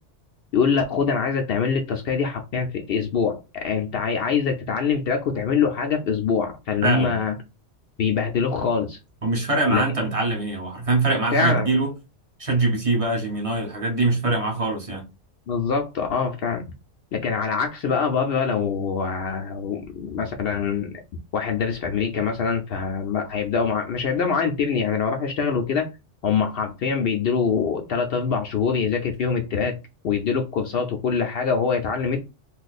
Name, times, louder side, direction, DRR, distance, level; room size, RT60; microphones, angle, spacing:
voice 1, 0.5-7.4 8.0-9.0 9.7-9.8 11.3-11.7 15.5-16.6 17.1-21.0 21.3-25.9 26.2-29.8 30.0-32.3, left 6 dB, 65° left, 0.7 m, -24 dB
voice 2, 6.8-7.2 9.2-11.9 12.4-15.1, right 2 dB, 30° right, 0.9 m, -23 dB
2.7 x 2.4 x 4.0 m
omnidirectional pair, 1.2 m